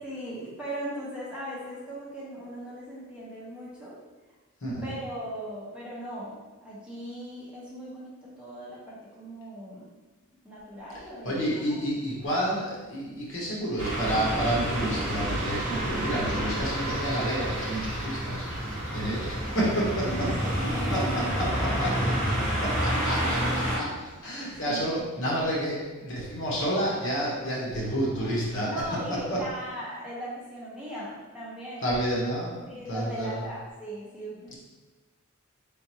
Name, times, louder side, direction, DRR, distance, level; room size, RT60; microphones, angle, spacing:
voice 1, 0.0-3.9 4.8-9.9 10.4-11.8 19.2-19.3 20.1-23.7 24.4-24.8 28.0-28.3 28.6-31.9 32.7-34.6, equal, 5° right, -8 dB, 1.1 m, -38 dB
voice 2, 11.2-20.1 20.9-22.1 22.6-23.8 24.2-28.7 29.3-29.4 31.8-33.4 34.5-34.6, right 1 dB, 60° left, -4 dB, 1.1 m, -30 dB
sound 1, 13.8-23.8, right 1 dB, 35° right, 1.3 m, -29 dB
4.3 x 3.7 x 2.9 m, 1.2 s
head